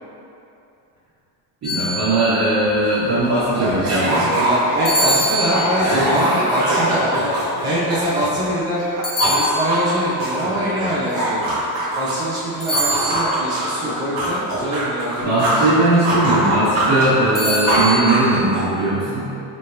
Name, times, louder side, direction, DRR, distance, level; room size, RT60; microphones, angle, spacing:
sound 1, 1.6-2.6 4.8-6.1 9.0-10.1 12.6-13.6 17.3-18.1, equal, 20° left, 1.2 m, -24 dB
voice 1, 1.6-4.3 5.8-6.1 6.6-7.2 15.2-19.3, right 2 dB, 45° right, -14 dB, 1.2 m, -19 dB
sound 2, 2.6-2.7 3.0-8.5 8.8-12.3 12.7-15.7 16.0-18.8, right 1 dB, 75° right, 1.4 m, -22 dB
voice 2, 3.6-8.8 9.2-11.5 11.9-15.3, right 1 dB, 10° right, -9 dB, 0.6 m, -24 dB
4.2 x 2.7 x 3.2 m, 2.7 s
cardioid pair, 125°, 44 cm